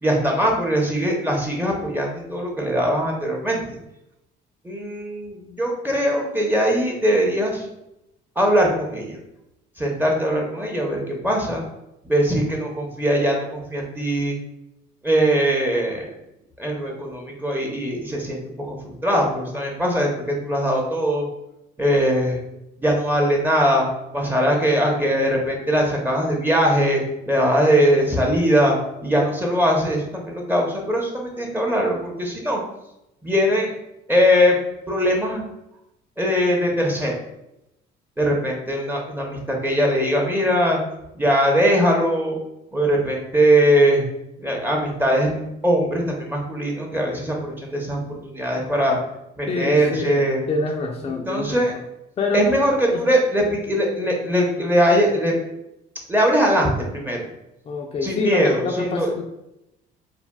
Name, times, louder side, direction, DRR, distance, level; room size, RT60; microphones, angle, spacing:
voice 1, 0.0-3.8 4.6-7.7 8.4-9.2 9.8-11.6 12.0-14.4 15.0-16.1 16.6-21.3 21.8-22.4 22.8-23.9 24.1-28.8 29.0-32.6 33.2-33.7 34.1-34.6 34.9-35.4 36.2-37.2 38.2-40.8 41.1-42.4 42.7-44.0 44.4-49.0 49.4-50.4 51.1-51.7 52.3-55.3 56.1-57.3 58.0-59.1, equal, 10° right, -1 dB, 0.7 m, -21 dB
voice 2, 49.5-50.2 50.5-51.6 52.2-52.5 52.9-53.0 57.7-59.2, left 3 dB, 30° left, 1 dB, 0.4 m, -26 dB
3.3 x 2.2 x 2.2 m, 0.87 s
supercardioid pair, 75°, 20 cm